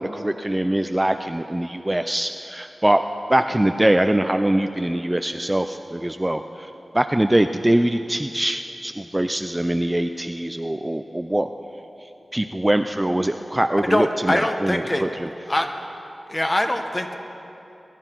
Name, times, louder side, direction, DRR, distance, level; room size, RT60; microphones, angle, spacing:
voice 1, 0.0-3.0 3.3-11.5 12.3-15.3, right 1 dB, 15° right, 7 dB, 0.4 m, -23 dB
voice 2, 13.8-15.0 15.5-15.7 16.3-17.1, left 1 dB, 25° left, 5 dB, 1.1 m, -23 dB
21.0 x 11.0 x 4.6 m, 3.0 s
wide cardioid pair, 65°, 0 cm